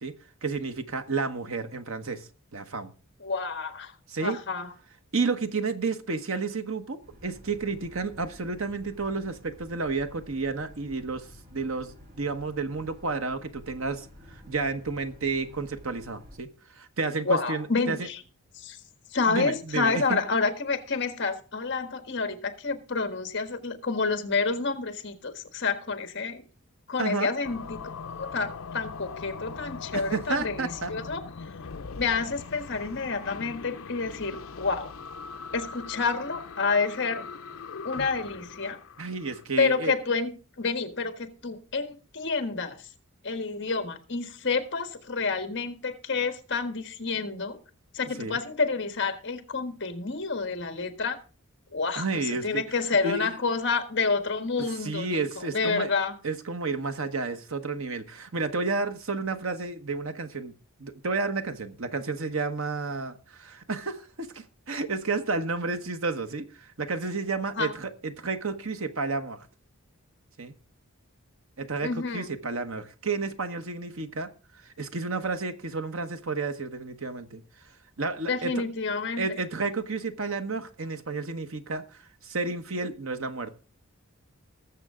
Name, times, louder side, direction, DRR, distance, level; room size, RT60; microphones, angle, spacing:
voice 1, 0.4-2.9 4.1-4.4 5.1-16.5 16.7-18.1 19.3-20.2 27.0-27.3 29.9-30.9 39.0-39.9 48.2-48.4 52.0-52.6 53.0-53.3 54.8-55.9 56.2-60.5 60.8-69.5 70.4-70.5 71.6-74.3 74.6-77.4 78.0-78.5 79.2-83.5, right 4 dB, 65° right, 8 dB, 1.1 m, -31 dB
voice 2, 3.2-3.9 4.2-4.7 17.3-18.2 18.6-18.8 19.1-26.4 26.9-27.8 28.2-31.2 32.0-34.9 35.5-37.2 37.8-38.8 39.6-42.8 43.2-47.6 47.9-51.2 51.7-55.2 55.5-56.1 67.6-67.7 71.8-72.3 78.3-79.4, left 4 dB, 50° left, 8 dB, 1.5 m, -29 dB
Boat Water vehicle, 7.0-16.4, left 1 dB, 45° right, 3.3 m, -51 dB
sound 1, 27.4-39.4, left 5 dB, 70° left, 0.6 m, -41 dB
19.5 x 7.4 x 3.7 m, 0.36 s
head